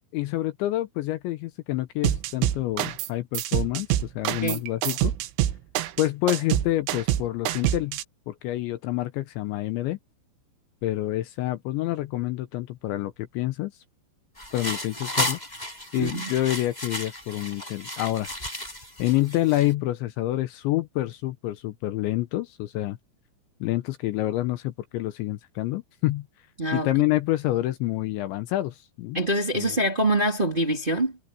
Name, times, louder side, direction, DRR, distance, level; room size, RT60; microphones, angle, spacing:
voice 1, 0.1-5.1 6.0-8.0 8.3-10.0 10.8-13.7 14.5-15.4 15.9-18.3 19.0-23.0 23.6-26.3 26.7-29.2 29.6-29.7, left 16 dB, 75° left, 3.0 m, -27 dB
sound 1, 2.0-3.1 3.3-8.0, right 13 dB, 85° right, 3.8 m, -26 dB
sound 2, 14.4-19.7, left 1 dB, 10° left, 7.2 m, -33 dB
voice 2, 16.0-16.3 26.6-26.9 29.1-31.2, right 1 dB, 15° right, 2.3 m, -25 dB
omnidirectional pair, 5.7 m